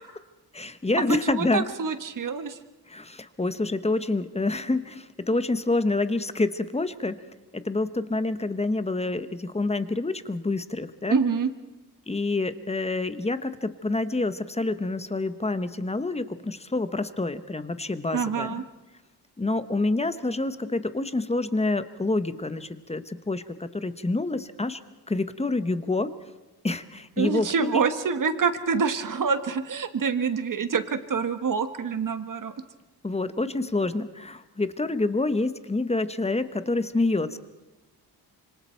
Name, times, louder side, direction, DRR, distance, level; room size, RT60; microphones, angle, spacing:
voice 1, 0.5-1.7 2.9-7.2 7.5-11.2 12.1-18.5 19.4-24.8 25.1-26.1 26.6-27.8 33.0-37.4, left 2 dB, 15° left, 12 dB, 1.0 m, -27 dB
voice 2, 1.1-2.6 11.1-11.5 18.1-18.6 27.2-32.5, right 5 dB, 50° right, 9 dB, 1.6 m, -26 dB
26.0 x 24.5 x 4.6 m, 1.1 s
cardioid pair, 100°, 40 cm